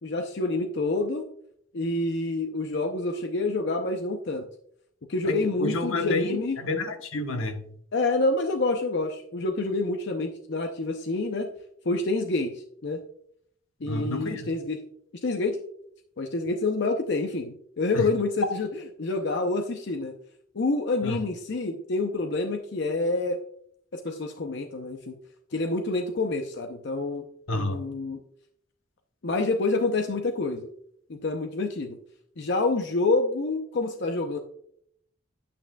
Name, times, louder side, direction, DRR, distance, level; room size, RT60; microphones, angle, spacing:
voice 1, 0.0-1.3 1.7-4.4 5.1-6.6 7.9-11.5 11.9-13.0 13.8-14.8 15.2-15.6 16.2-20.1 20.5-23.4 23.9-25.2 25.5-27.2 27.5-28.2 29.2-30.7 31.1-32.0 32.4-34.4, left 2 dB, 60° left, 4 dB, 0.6 m, -27 dB
voice 2, 5.2-7.7 13.8-14.5 17.9-18.1 21.0-21.2 27.5-27.8, left 2 dB, 80° left, 6 dB, 1.0 m, -30 dB
9.0 x 8.5 x 2.3 m, 0.68 s
head